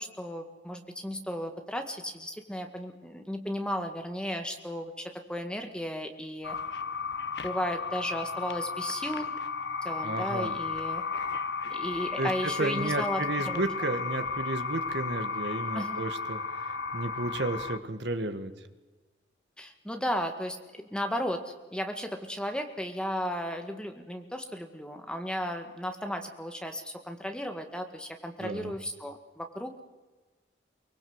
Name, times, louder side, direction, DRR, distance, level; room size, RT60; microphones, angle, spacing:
voice 1, 0.0-6.6 7.4-9.3 9.8-11.0 11.6-13.6 15.7-16.0 19.6-29.8, equal, 5° left, 5 dB, 1.8 m, -35 dB
sound 1, 6.4-17.8, left 5 dB, 60° left, 1.2 m, -34 dB
voice 2, 10.0-10.5 12.2-16.4 16.9-18.5 28.4-28.7, right 2 dB, 65° right, 9 dB, 1.7 m, -32 dB
23.5 x 20.5 x 8.0 m, 1.2 s
head